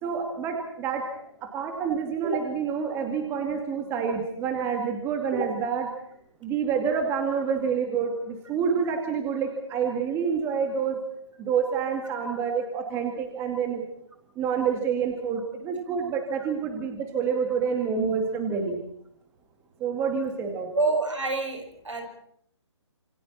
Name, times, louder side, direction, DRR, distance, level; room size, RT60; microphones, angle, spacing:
voice 1, 0.0-1.0 1.4-5.9 6.4-11.0 11.4-13.8 14.4-18.8 19.8-20.7, right 6 dB, 15° right, 4 dB, 2.4 m, -28 dB
voice 2, 20.7-22.1, right 3 dB, 85° right, 4 dB, 7.0 m, -27 dB
27.5 x 25.0 x 4.4 m, 0.68 s
figure-of-eight pair, 145°, 15 cm